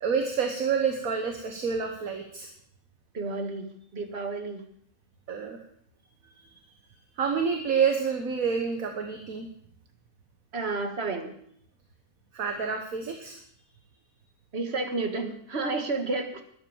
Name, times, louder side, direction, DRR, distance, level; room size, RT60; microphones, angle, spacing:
voice 1, 0.0-2.5 5.3-5.6 7.2-9.5 12.3-13.4, right 6 dB, 60° right, 5 dB, 1.7 m, -28 dB
voice 2, 3.1-4.6 10.5-11.3 14.5-16.4, right 3 dB, 40° right, 6 dB, 1.9 m, -31 dB
12.5 x 11.0 x 7.2 m, 0.66 s
omnidirectional pair, 1.7 m